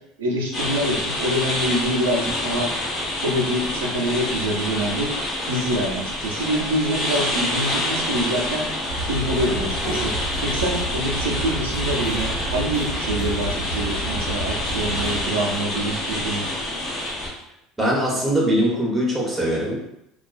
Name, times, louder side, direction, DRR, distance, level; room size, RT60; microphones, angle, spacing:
voice 1, 0.2-2.7 3.2-5.1 5.5-8.7 9.0-16.5, equal, 85° right, -1 dB, 0.5 m, -25 dB
sound 1, 0.5-17.3, left 1 dB, 45° left, 0.9 m, -27 dB
sound 2, 8.9-15.3, right 2 dB, 80° left, 0.7 m, -30 dB
voice 2, 17.8-20.0, equal, 15° right, -3 dB, 0.9 m, -22 dB
2.3 x 2.2 x 2.4 m, 0.80 s
hypercardioid pair, 75°, 0 cm